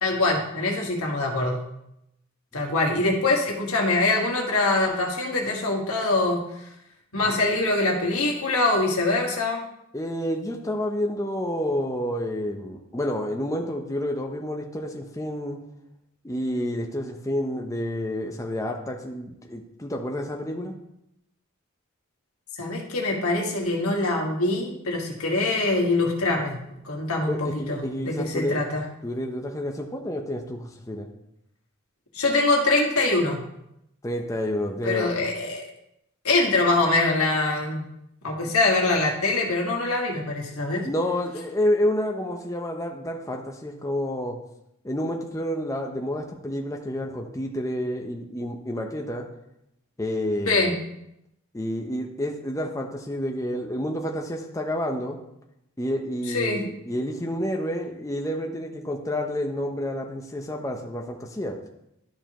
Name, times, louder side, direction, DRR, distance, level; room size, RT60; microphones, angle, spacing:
voice 1, 0.0-1.6 2.5-6.5 7.1-9.6 22.6-26.6 26.8-27.8 28.0-28.8 32.1-33.4 34.8-35.6 36.2-37.9 38.2-40.9 50.5-50.7 56.3-56.6, left 2 dB, 85° left, 0 dB, 1.6 m, -24 dB
voice 2, 9.9-15.6 16.2-20.7 27.3-28.6 29.0-31.1 34.0-35.1 40.8-44.4 44.8-49.2 50.0-50.7 51.5-55.2 55.8-61.6, left 1 dB, 15° left, 2 dB, 0.6 m, -29 dB
12.0 x 4.7 x 3.0 m, 0.80 s
head